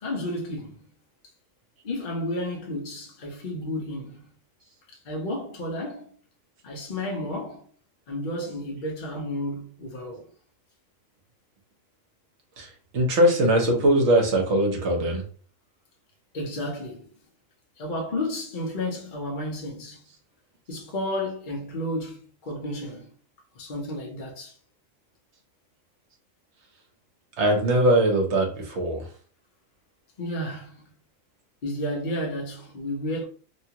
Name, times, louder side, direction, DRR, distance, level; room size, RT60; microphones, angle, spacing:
voice 1, 0.0-0.9 1.8-4.3 5.0-6.2 6.6-7.6 8.1-10.3 16.3-17.1 17.8-20.0 20.7-23.1 23.5-24.5 30.2-30.9 31.6-33.2, left 1 dB, 45° left, 0.8 m, -32 dB
voice 2, 12.6-15.2 27.4-29.1, right 1 dB, 60° right, 1.0 m, -21 dB
2.8 x 2.3 x 2.8 m
omnidirectional pair, 1.4 m